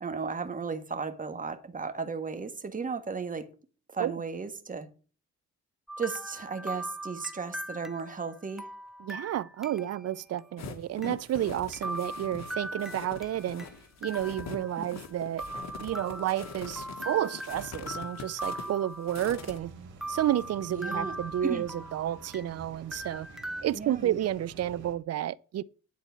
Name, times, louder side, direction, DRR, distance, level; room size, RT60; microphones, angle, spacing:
voice 1, 0.0-3.5 3.9-4.9 6.0-8.7 14.8-15.0 20.7-21.1 21.4-21.7 23.7-24.2, right 5 dB, 25° right, 1.6 m, -35 dB
sound 1, 5.9-10.1 10.4-10.5 11.0-11.1 11.7-13.7 14.0-15.1 15.4-19.6 20.0-22.6 22.9-23.6, right 1 dB, ahead, 0.7 m, -40 dB
voice 2, 9.0-13.7 14.0-15.5 15.8-19.7 20.1-23.3 23.6-25.6, right 12 dB, 55° right, 0.6 m, -31 dB
sound 2, 10.6-19.6, left 5 dB, 60° left, 1.6 m, -43 dB
sound 3, 19.3-24.9, right 5 dB, 75° right, 2.5 m, -50 dB
10.5 x 4.3 x 7.0 m
cardioid pair, 90°, 30 cm